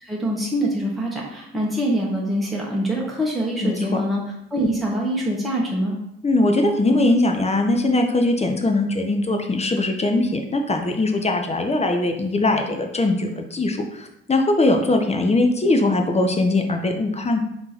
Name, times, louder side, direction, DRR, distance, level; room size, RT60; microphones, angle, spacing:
voice 1, 0.0-4.2 4.5-6.0, equal, ahead, -4 dB, 1.1 m, -24 dB
voice 2, 3.6-4.0 6.2-17.4, left 2 dB, 20° left, 4 dB, 0.7 m, -21 dB
3.6 x 2.9 x 4.1 m, 0.81 s
hypercardioid pair, 50°, 31 cm